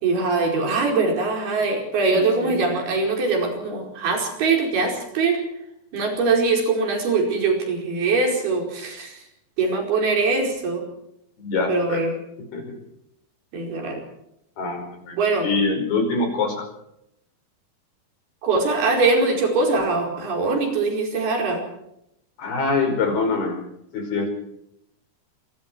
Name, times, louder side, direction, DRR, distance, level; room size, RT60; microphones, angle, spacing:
voice 1, 0.0-5.4 5.9-9.2 9.6-10.8 11.7-12.1 13.5-14.0 15.2-15.5 18.4-21.6, right 3 dB, 80° right, 2 dB, 6.9 m, -22 dB
voice 2, 2.1-2.6 11.4-12.0 12.5-12.6 14.6-16.7 22.4-23.6 23.9-24.3, left 3 dB, 80° left, 5 dB, 7.1 m, -24 dB
27.0 x 23.0 x 4.6 m, 0.79 s
omnidirectional pair, 4.4 m